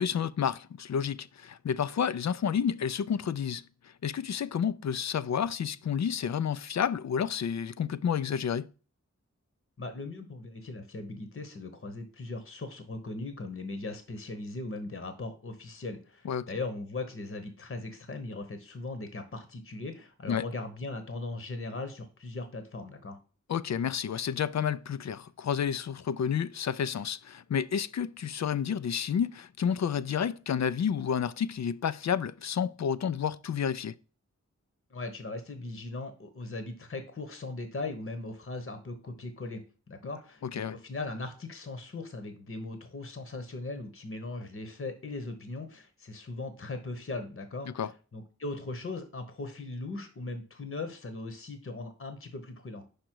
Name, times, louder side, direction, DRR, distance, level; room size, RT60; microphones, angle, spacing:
voice 1, 0.0-3.6 4.0-8.7 16.2-16.5 20.3-20.4 23.5-33.9 40.4-40.8 47.7-47.9, left 7 dB, 65° left, 0.4 m, -30 dB
voice 2, 9.8-23.2 34.9-39.6 39.9-52.8, left 2 dB, 45° left, 1.0 m, -39 dB
5.1 x 5.1 x 4.5 m
cardioid pair, 40°, 29 cm